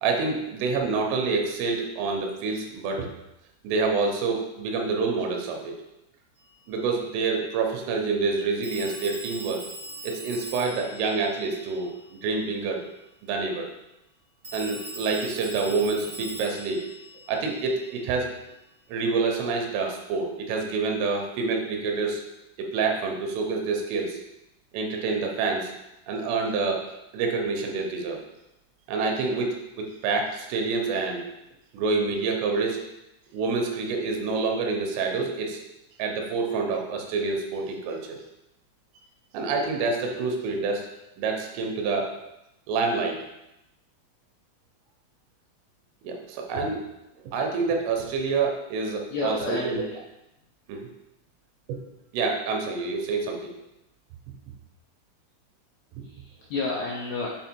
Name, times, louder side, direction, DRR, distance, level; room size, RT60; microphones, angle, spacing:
voice 1, 0.0-3.1 3.6-5.8 6.7-9.7 10.0-12.9 13.2-13.7 14.5-16.9 17.3-18.3 18.9-22.3 22.6-24.2 24.7-25.7 26.1-26.9 27.1-28.2 28.9-31.2 31.7-32.8 33.3-35.6 36.0-38.2 39.3-40.9 41.2-42.2 42.7-43.2 46.0-46.8 47.2-49.8 50.7-50.9 51.7-51.8 52.1-53.5, right 4 dB, 80° right, 2 dB, 3.3 m, -27 dB
Telephone, 6.4-6.5 8.6-12.3 14.4-18.1, right 1 dB, 45° right, 0.6 m, -41 dB
voice 2, 49.1-50.0 56.0-57.3, left 3 dB, 85° left, -4 dB, 2.3 m, -31 dB
8.1 x 3.3 x 4.4 m, 0.91 s
omnidirectional pair, 5.8 m